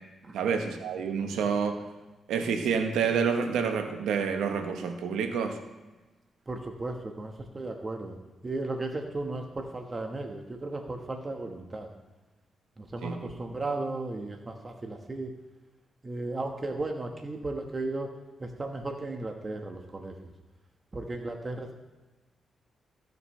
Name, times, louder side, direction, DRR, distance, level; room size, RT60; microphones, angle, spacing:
voice 1, 0.3-1.8 2.3-5.6 13.0-13.3, right 6 dB, 85° right, 6 dB, 1.1 m, -28 dB
voice 2, 6.5-8.2 8.4-11.9 12.8-15.3 16.0-18.1 18.4-20.1 20.9-21.7, right 2 dB, 35° right, 3 dB, 1.4 m, -35 dB
15.0 x 6.6 x 3.3 m, 1.2 s
supercardioid pair, 55°, 0 cm